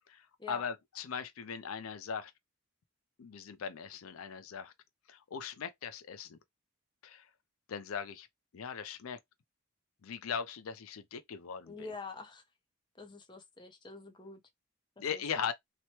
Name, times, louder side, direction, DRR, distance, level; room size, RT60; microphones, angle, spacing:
voice 1, 0.5-2.3 3.2-4.7 5.1-6.4 7.0-7.2 7.7-8.3 8.5-9.2 10.0-11.9 15.0-15.5, left 7 dB, 85° left, 0.4 m, -39 dB
voice 2, 11.7-12.4 13.0-14.4 15.0-15.5, left 4 dB, 20° left, 0.5 m, -46 dB
2.9 x 2.1 x 2.8 m
head